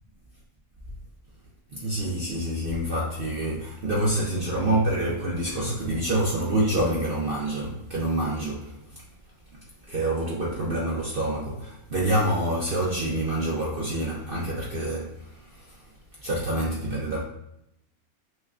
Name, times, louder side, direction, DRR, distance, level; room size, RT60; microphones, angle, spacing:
voice 1, 1.7-8.8 9.9-15.3 16.2-17.2, right 1 dB, 55° right, 0.6 m, -27 dB
6.2 x 2.2 x 2.4 m
omnidirectional pair, 1.5 m